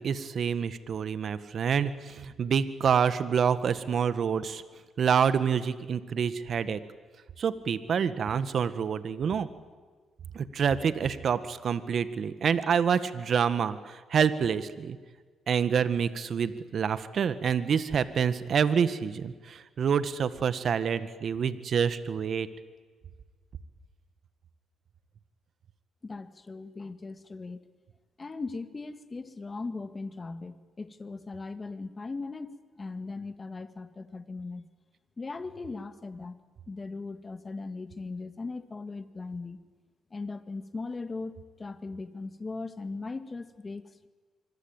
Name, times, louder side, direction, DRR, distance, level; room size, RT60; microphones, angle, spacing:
voice 1, 0.0-4.6 5.0-6.8 7.4-9.5 10.3-15.0 15.5-22.5, right 7 dB, 55° right, 13 dB, 1.7 m, -27 dB
voice 2, 26.0-27.6 28.2-34.7 35.2-36.4 36.7-39.6 40.1-44.1, left 3 dB, 30° left, 11 dB, 1.9 m, -39 dB
25.5 x 24.0 x 9.0 m, 1.5 s
cardioid pair, 90°, 0 cm